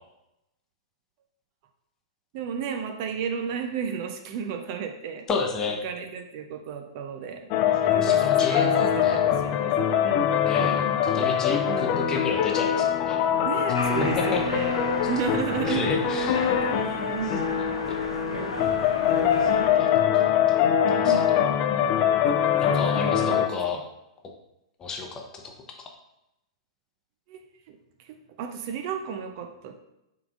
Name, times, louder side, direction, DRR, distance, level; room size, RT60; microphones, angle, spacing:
voice 1, 2.3-5.3 5.8-7.5 7.9-9.7 10.0-10.3 11.7-11.9 13.4-14.8 15.0-15.8 17.1-17.6 21.0-21.2 22.2-22.5 22.8-23.4 27.3-27.4 27.7-29.7, right 7 dB, 40° right, 5 dB, 0.5 m, -33 dB
voice 2, 5.3-5.8 7.8-9.2 10.4-13.2 14.2-14.4 15.7-16.5 17.6-18.0 19.4-19.5 19.8-19.9 20.1-20.6 20.9-21.1 22.6-23.8 24.8-25.5, left 4 dB, 20° left, 2 dB, 0.8 m, -31 dB
sound 1, 7.5-23.5, left 9 dB, 35° left, 0.4 m, -23 dB
sound 2, 13.7-19.7, left 1 dB, 85° left, 0.9 m, -34 dB
5.8 x 3.7 x 2.5 m, 0.86 s
figure-of-eight pair, 105°, 3 cm